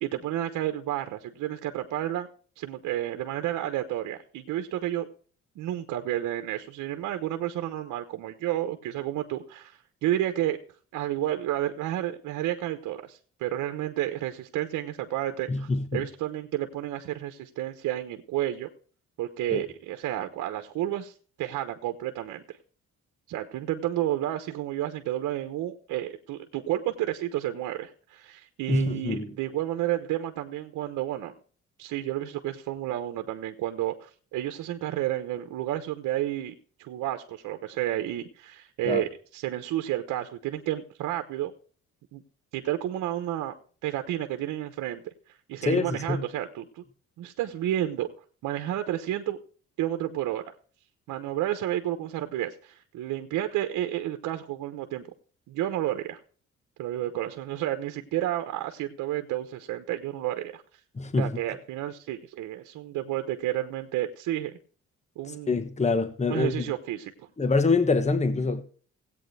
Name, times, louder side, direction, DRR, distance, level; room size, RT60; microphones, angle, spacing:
voice 1, 0.0-2.3 2.6-5.1 5.6-10.6 10.9-18.7 19.2-21.1 21.4-22.6 23.3-31.3 31.8-41.5 42.1-42.2 42.5-43.5 43.8-45.1 45.5-46.8 47.2-48.1 48.4-49.4 49.8-50.4 51.1-55.0 55.5-56.2 56.8-60.6 61.2-64.5 65.2-65.6 66.3-67.1, right 13 dB, 85° right, 1.1 m, -31 dB
voice 2, 15.5-16.0 19.5-19.6 28.7-29.3 38.9-39.0 45.6-46.2 61.0-61.3 65.5-66.6 67.4-68.6, left 3 dB, 20° left, 1.4 m, -25 dB
17.0 x 8.7 x 3.3 m
cardioid pair, 90°, 30 cm